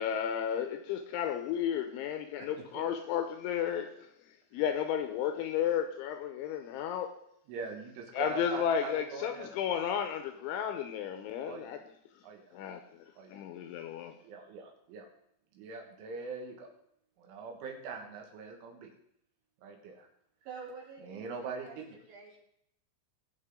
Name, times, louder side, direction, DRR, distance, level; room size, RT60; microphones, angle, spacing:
voice 1, 0.0-3.9 4.5-7.1 8.1-11.8 12.5-12.8 13.3-14.1, left 8 dB, 80° left, 3.0 m, -33 dB
voice 2, 7.5-9.6 11.4-11.7 12.2-12.5 13.2-13.4 14.2-15.1 15.6-16.7 17.2-18.9 19.6-20.1 21.0-22.0, right 4 dB, 75° right, 3.9 m, -43 dB
voice 3, 20.5-22.4, right 5 dB, 55° right, 5.4 m, -48 dB
22.0 x 7.4 x 3.8 m
omnidirectional pair, 5.9 m